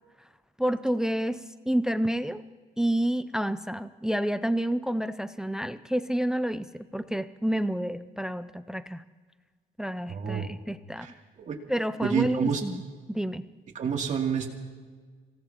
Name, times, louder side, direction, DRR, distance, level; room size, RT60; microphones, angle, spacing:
voice 1, 0.6-2.4 2.8-9.0 9.8-11.1 11.7-12.8 13.1-13.5, right 1 dB, 5° right, 13 dB, 0.5 m, -29 dB
voice 2, 10.1-10.5 11.0-11.1 11.4-11.6 12.0-12.6 13.7-14.5, right 7 dB, 45° right, 0 dB, 2.8 m, -28 dB
26.5 x 18.0 x 3.0 m, 1.5 s
cardioid pair, 110°, 17 cm